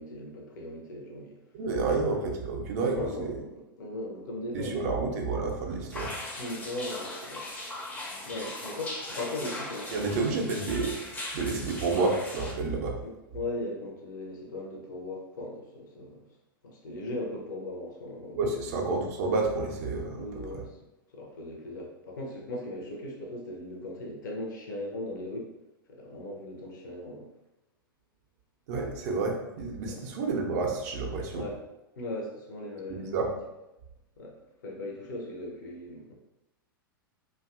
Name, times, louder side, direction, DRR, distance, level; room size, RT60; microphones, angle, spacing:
voice 1, 0.0-1.4 1.9-2.1 2.9-5.1 6.4-7.5 8.2-10.2 13.0-16.2 16.6-18.7 20.1-20.8 21.1-25.5 25.9-27.3 29.9-30.1 31.3-31.6 32.0-33.3 34.2-34.3 34.6-36.1, left 1 dB, 55° left, 0 dB, 0.6 m, -38 dB
voice 2, 1.5-3.3 4.5-6.1 9.9-11.0 11.3-13.0 18.4-20.3 28.7-31.4 32.9-33.3, right 3 dB, 45° right, 2 dB, 0.4 m, -29 dB
sound 1, 5.9-12.5, left 1 dB, 15° left, 0.5 m, -39 dB
2.5 x 2.3 x 2.4 m, 0.94 s
figure-of-eight pair, 95°, 12 cm